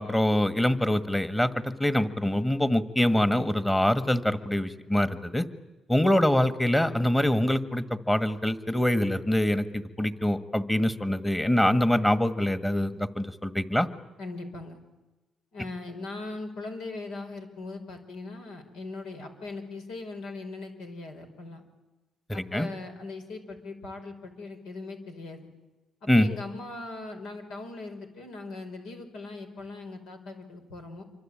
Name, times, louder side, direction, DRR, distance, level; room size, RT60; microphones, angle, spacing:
voice 1, 0.0-5.5 5.9-13.9 22.3-22.7 26.1-26.3, left 1 dB, 10° left, 10 dB, 1.7 m, -24 dB
voice 2, 14.2-14.8 15.5-21.6 22.3-25.5 26.2-31.0, left 3 dB, 90° left, 5 dB, 5.0 m, -40 dB
27.5 x 24.5 x 8.8 m, 1.1 s
cardioid pair, 90°, 0 cm